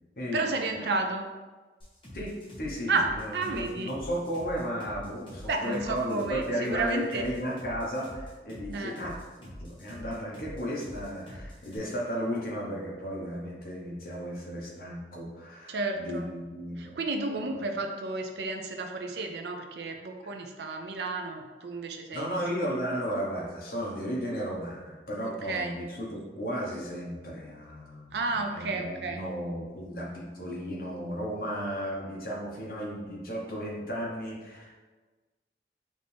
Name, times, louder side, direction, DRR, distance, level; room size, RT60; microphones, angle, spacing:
voice 1, 0.3-1.3 2.9-3.9 5.5-7.3 8.7-9.1 15.7-16.3 16.8-22.4 25.2-25.7 28.1-29.2, right 3 dB, 75° right, 4 dB, 0.5 m, -32 dB
sound 1, 1.8-11.8, equal, 30° left, 1.2 m, -45 dB
voice 2, 2.1-17.0 17.3-17.6 22.1-34.7, equal, 55° left, -3 dB, 1.0 m, -34 dB
5.0 x 2.7 x 3.4 m, 1.3 s
head